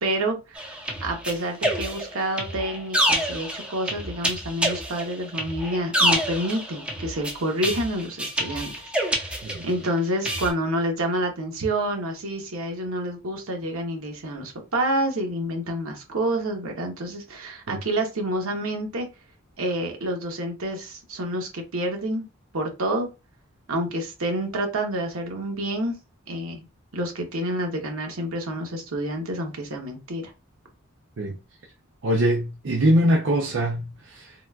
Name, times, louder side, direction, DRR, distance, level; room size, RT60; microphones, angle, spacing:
voice 1, 0.0-19.1 19.6-22.3 22.5-23.1 23.7-26.0 26.3-26.7 26.9-30.3, right 1 dB, 80° right, 0.9 m, -28 dB
sound 1, 0.6-9.9 10.2-10.5, equal, 5° right, 0.4 m, -27 dB
voice 2, 32.0-34.3, equal, 55° right, 0.5 m, -23 dB
3.7 x 2.4 x 2.2 m
head